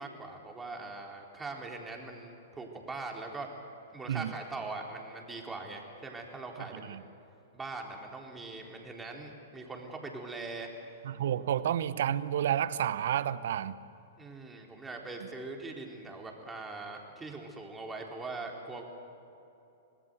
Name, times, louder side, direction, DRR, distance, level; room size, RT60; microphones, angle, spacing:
voice 1, 0.0-3.5 3.9-7.0 7.5-10.7 14.2-18.8, right 3 dB, 10° right, 1 dB, 4.0 m, -41 dB
voice 2, 11.0-13.8, right 10 dB, 65° right, 16 dB, 0.9 m, -30 dB
26.0 x 19.5 x 8.1 m, 2.8 s
hypercardioid pair, 110°, 0 cm